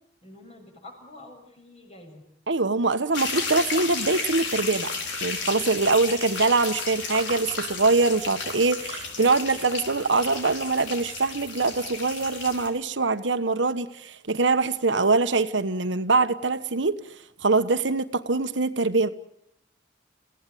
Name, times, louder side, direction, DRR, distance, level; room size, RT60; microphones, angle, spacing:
voice 1, 0.2-2.3, left 2 dB, 35° left, 2 dB, 7.3 m, -47 dB
voice 2, 2.5-4.9 5.2-17.0 17.4-19.1, right 3 dB, 85° right, 10 dB, 1.3 m, -23 dB
sound 1, 3.1-12.7, left 4 dB, 85° left, 5.0 m, -33 dB
30.0 x 17.0 x 9.3 m, 0.77 s
head